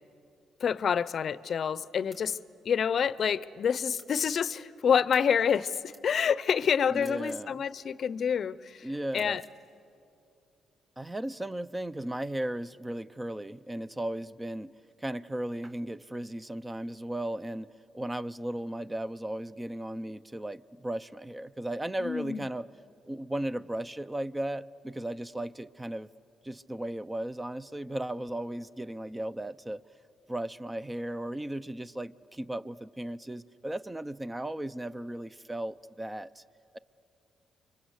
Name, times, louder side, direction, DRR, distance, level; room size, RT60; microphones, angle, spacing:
voice 1, 0.6-2.4 2.6-8.9 9.1-9.4 22.0-22.5, left 7 dB, 55° left, 18 dB, 0.6 m, -27 dB
sound 1, 2.1-2.3 4.0-4.2 5.1-5.3 5.9-6.1 6.9-7.5 9.1-9.6, right 2 dB, 35° right, 5.4 m, -55 dB
voice 2, 6.9-7.6 8.8-9.4 11.0-14.7 15.0-22.7 23.1-26.1 26.4-29.8 30.3-36.4, right 1 dB, 15° right, 15 dB, 0.5 m, -36 dB
29.5 x 24.5 x 8.2 m, 2.7 s
cardioid pair, 90°, 0 cm